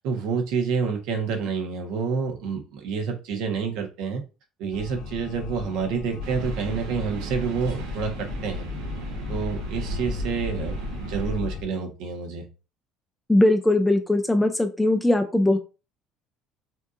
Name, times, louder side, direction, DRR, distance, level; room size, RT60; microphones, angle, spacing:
voice 1, 0.0-4.2 4.6-8.7 9.3-12.5, right 5 dB, 70° right, 4 dB, 1.2 m, -28 dB
sound 1, 4.7-11.6, left 6 dB, 65° left, 0.8 m, -36 dB
sound 2, 6.2-11.3, right 3 dB, 90° right, 0.8 m, -35 dB
voice 2, 13.3-15.6, left 1 dB, 5° left, 7 dB, 0.4 m, -20 dB
5.8 x 2.8 x 2.5 m, 0.32 s
cardioid pair, 160°, 0 cm